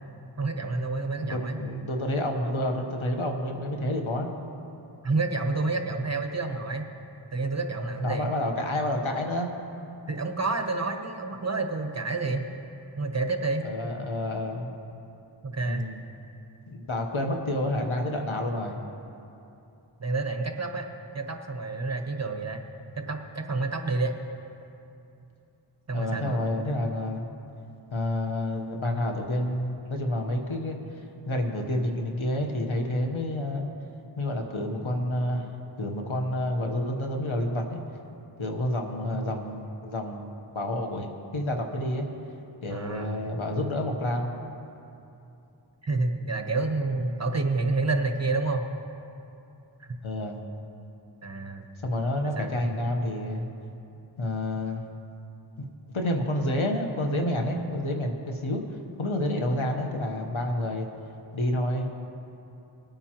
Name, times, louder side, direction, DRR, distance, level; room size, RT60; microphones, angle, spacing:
voice 1, 0.4-1.6 5.0-6.8 7.3-8.3 10.1-12.5 13.0-13.6 15.4-15.9 20.0-20.8 21.1-22.6 23.0-24.1 25.9-26.4 39.1-39.3 42.7-43.2 45.8-48.7 49.8-49.9 51.2-51.7 52.3-52.6, right 3 dB, 35° right, 5 dB, 1.0 m, -29 dB
voice 2, 1.2-4.3 8.0-9.5 13.6-14.7 15.6-16.0 16.7-18.8 25.9-27.3 27.9-30.8 31.2-33.7 34.2-35.5 35.8-37.8 38.4-40.2 40.5-42.1 42.6-44.3 47.1-47.2 50.0-50.4 51.8-53.5 54.2-54.8 55.6-55.7 55.9-58.6 59.0-60.9 61.3-61.9, left 1 dB, 90° left, 3 dB, 1.2 m, -29 dB
20.5 x 8.9 x 3.0 m, 2.7 s
wide cardioid pair, 40°, 47 cm